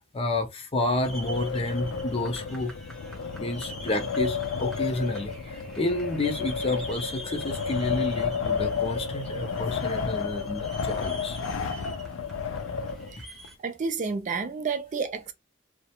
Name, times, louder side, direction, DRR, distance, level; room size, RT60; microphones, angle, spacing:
voice 1, 0.1-2.7 3.4-11.4, left 2 dB, 30° left, 0.5 m, -30 dB
Wind, 0.8-13.5, left 5 dB, 80° left, 0.4 m, -32 dB
sound 1, 1.0-13.6, equal, ahead, 0.8 m, -45 dB
voice 2, 13.6-15.3, right 5 dB, 40° right, 0.4 m, -30 dB
2.4 x 2.1 x 2.8 m
head